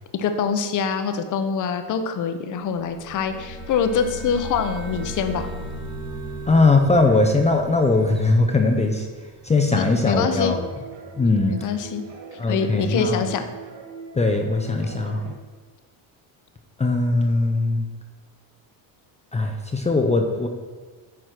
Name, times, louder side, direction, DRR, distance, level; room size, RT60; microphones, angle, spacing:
voice 1, 0.1-5.5 9.8-10.5 11.5-12.0 12.5-13.4 14.7-14.8, left 6 dB, 40° left, 8 dB, 0.9 m, -25 dB
sound 1, 2.7-9.5, right 1 dB, 10° right, 1.8 m, -36 dB
voice 2, 6.5-9.1 9.4-10.7 11.2-11.6 12.4-13.2 14.1-15.2 16.8-17.8 19.3-20.5, left 3 dB, 15° left, 3 dB, 0.6 m, -20 dB
sound 2, 9.9-15.3, right 5 dB, 75° right, 1.8 m, -41 dB
9.5 x 4.8 x 5.9 m, 1.4 s
cardioid pair, 140°, 46 cm